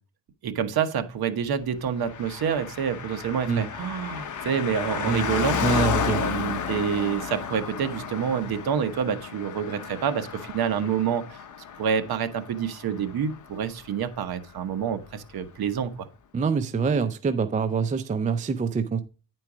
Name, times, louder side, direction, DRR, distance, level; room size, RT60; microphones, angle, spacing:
voice 1, 0.4-5.6 6.1-11.2 11.8-16.1, right 7 dB, 50° right, 1.1 m, -27 dB
Car passing by, 2.0-13.9 14.1-14.2, left 6 dB, 40° left, 0.9 m, -32 dB
voice 2, 5.6-6.2 16.3-19.0, right 5 dB, 20° right, 0.4 m, -25 dB
9.5 x 4.5 x 4.9 m
cardioid pair, 135°, 46 cm